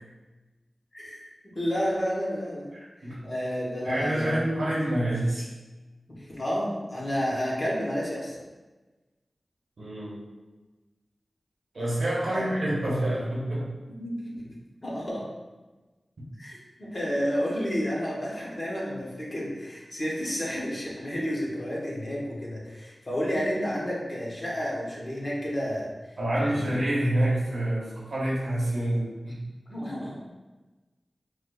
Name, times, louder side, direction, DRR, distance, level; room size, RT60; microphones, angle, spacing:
voice 1, 1.5-2.7 3.0-4.4 6.2-8.3 12.3-12.4 13.9-14.4 14.8-15.2 16.4-25.9 26.4-26.7 29.7-30.1, equal, 50° left, -5 dB, 1.0 m, -31 dB
voice 2, 2.7-3.2 3.8-5.5 9.8-10.2 11.7-13.7 26.2-29.4, right 1 dB, 85° right, -6 dB, 0.9 m, -27 dB
4.8 x 2.2 x 2.3 m, 1.2 s
cardioid pair, 45°, 0 cm